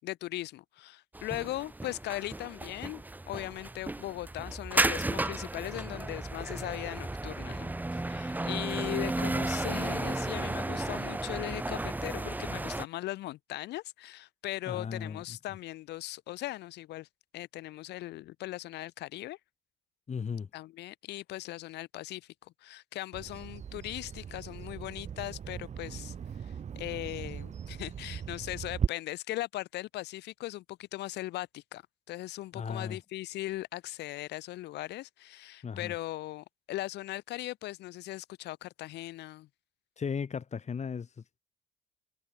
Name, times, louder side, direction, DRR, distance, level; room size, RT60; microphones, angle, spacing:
voice 1, 0.0-17.1 17.3-19.4 20.5-26.1 26.4-39.5, left 16 dB, 65° left, 5.4 m, -39 dB
sound 1, 1.1-12.8, right 2 dB, 10° right, 0.8 m, -34 dB
voice 2, 14.7-15.2 20.1-20.5 32.5-33.0 35.6-36.0 40.0-41.4, left 6 dB, 40° left, 3.6 m, -36 dB
Bird vocalization bird call bird song, 23.1-28.9, right 7 dB, 40° right, 1.1 m, -38 dB
hypercardioid pair, 50°, 19 cm